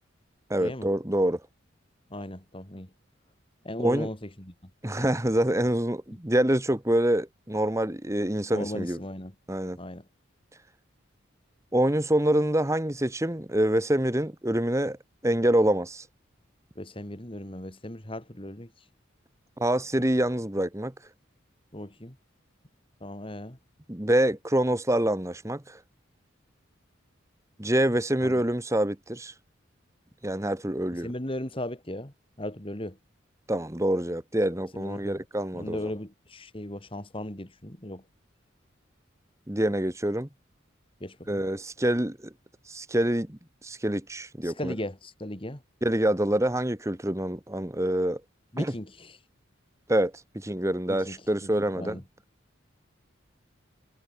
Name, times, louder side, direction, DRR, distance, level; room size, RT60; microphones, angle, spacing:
voice 1, 0.5-1.4 3.8-4.1 4.8-9.0 9.5-9.8 11.7-15.0 15.2-16.1 19.6-20.9 23.9-25.8 27.6-29.3 30.2-31.1 33.5-35.8 39.5-40.3 41.3-42.3 42.7-44.7 45.8-48.2 48.6-48.7 49.9-52.0, right 1 dB, 15° right, 1.3 m, -26 dB
voice 2, 2.1-2.9 3.6-4.7 8.5-9.4 9.7-10.1 16.8-18.7 21.7-22.2 23.0-23.6 28.2-28.4 31.0-33.0 34.7-35.2 35.5-38.0 41.0-41.4 44.4-45.6 48.5-49.2 50.9-52.0, left 1 dB, 25° left, 2.5 m, -37 dB
head